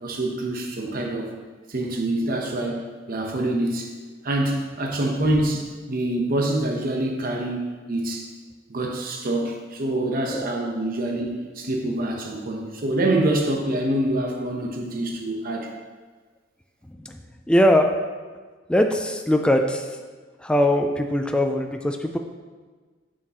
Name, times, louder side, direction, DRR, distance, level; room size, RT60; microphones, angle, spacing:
voice 1, 0.0-1.3 1.7-3.9 4.2-8.3 8.7-15.7, right 1 dB, 50° right, 2 dB, 0.8 m, -26 dB
voice 2, 17.5-17.9 18.7-19.9 20.4-22.2, left 1 dB, 5° left, 4 dB, 0.3 m, -21 dB
7.3 x 6.5 x 2.9 m, 1.4 s
head